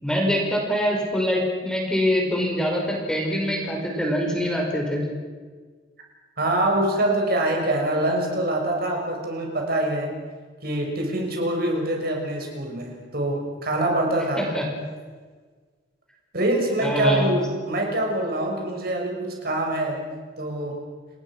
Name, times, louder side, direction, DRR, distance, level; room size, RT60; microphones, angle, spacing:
voice 1, 0.0-5.0 14.4-14.6 16.8-17.3, equal, 5° left, 0 dB, 5.6 m, -24 dB
voice 2, 6.4-10.2 10.6-14.4 16.3-20.8, right 1 dB, 60° right, 1 dB, 6.3 m, -25 dB
29.5 x 21.0 x 6.4 m, 1.5 s
head